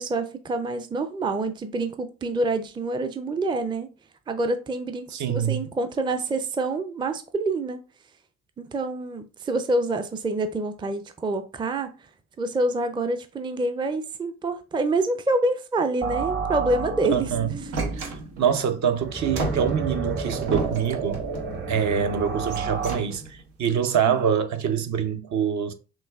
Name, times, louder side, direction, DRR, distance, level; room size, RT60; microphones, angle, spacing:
voice 1, 0.0-3.9 4.3-7.8 8.6-11.9 12.4-17.3 24.1-24.2, right 2 dB, 15° right, 0.5 m, -27 dB
voice 2, 5.1-5.6 17.0-17.5 17.9-21.2 21.7-25.7, right 7 dB, 50° right, 0.7 m, -25 dB
sound 1, 16.0-23.0, right 4 dB, 30° right, 1.0 m, -31 dB
sound 2, 17.7-18.6 19.3-21.7 22.4-23.5, right 3 dB, 80° right, 0.8 m, -32 dB
6.0 x 2.3 x 2.3 m
hypercardioid pair, 45°, 37 cm